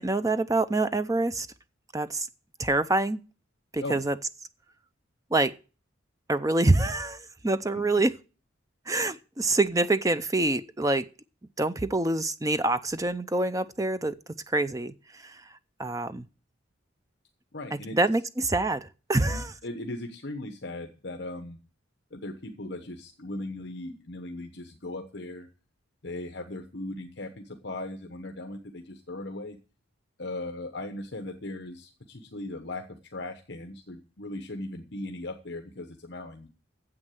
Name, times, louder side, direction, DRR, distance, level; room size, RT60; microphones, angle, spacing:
voice 1, 0.0-1.5 1.9-2.3 2.6-3.2 3.7-4.1 5.3-5.5 6.3-8.2 8.9-11.1 11.6-14.2 14.5-15.4 15.8-16.3 18.0-19.5, right 2 dB, 15° right, 0.5 m, -26 dB
voice 2, 7.7-8.1 17.5-18.0 19.2-21.6 22.1-25.5 26.0-29.6 30.2-36.5, left 2 dB, 55° left, 1.1 m, -38 dB
9.7 x 7.7 x 9.2 m
head